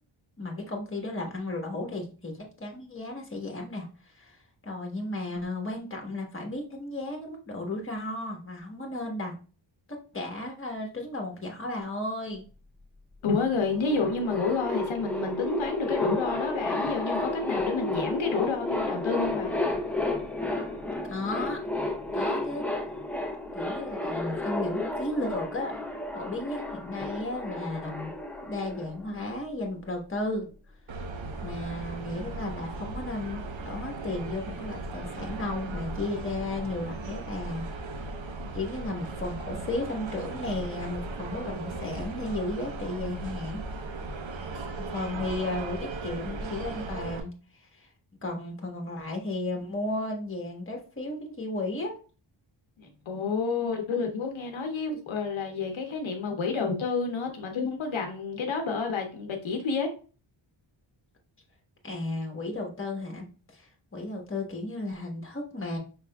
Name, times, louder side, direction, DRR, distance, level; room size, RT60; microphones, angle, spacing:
voice 1, 0.4-3.9 4.1-4.4 4.6-9.4 9.9-12.4 21.1-21.6 22.1-22.6 23.5-25.7 26.1-28.1 28.4-30.5 31.4-37.7 38.5-43.6 44.8-47.3 47.7-47.9 48.2-52.0 61.8-63.2 63.5-65.8, left 2 dB, 25° left, 1.3 m, -34 dB
voice 2, 13.2-19.5 52.8-59.9, left 4 dB, 70° left, 0.8 m, -29 dB
sound 1, 13.5-29.5, left 2 dB, 5° left, 0.5 m, -32 dB
sound 2, 30.9-47.2, right 3 dB, 70° right, 0.8 m, -37 dB
5.6 x 3.4 x 2.2 m
wide cardioid pair, 110°, 48 cm